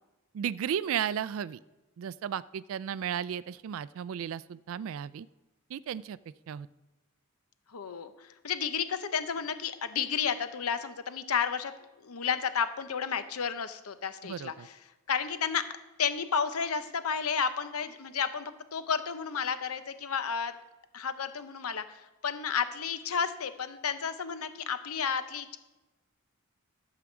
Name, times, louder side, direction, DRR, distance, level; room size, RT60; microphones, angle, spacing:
voice 1, 0.3-1.6 2.0-5.3 5.7-6.2 6.5-6.7 14.2-14.7, right 9 dB, 65° right, 18 dB, 0.3 m, -34 dB
voice 2, 7.7-11.7 12.0-14.5 15.1-15.6 16.0-20.5 20.9-22.0 22.2-25.6, left 6 dB, 90° left, 11 dB, 0.8 m, -32 dB
11.5 x 4.8 x 7.1 m, 1.1 s
head